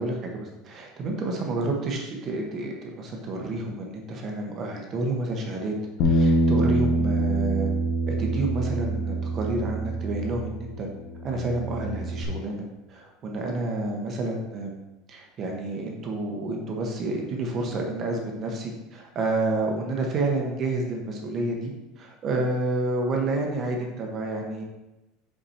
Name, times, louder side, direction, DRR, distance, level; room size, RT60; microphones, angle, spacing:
voice 1, 0.0-5.7 6.0-7.7 8.1-10.9 11.2-14.7 15.1-21.7 22.0-24.6, right 2 dB, 25° right, 1 dB, 0.8 m, -29 dB
Bass guitar, 6.0-10.8 11.1-12.2, right 1 dB, 40° left, 0.8 m, -25 dB
5.7 x 5.5 x 4.3 m, 1.0 s
cardioid pair, 180°, 0 cm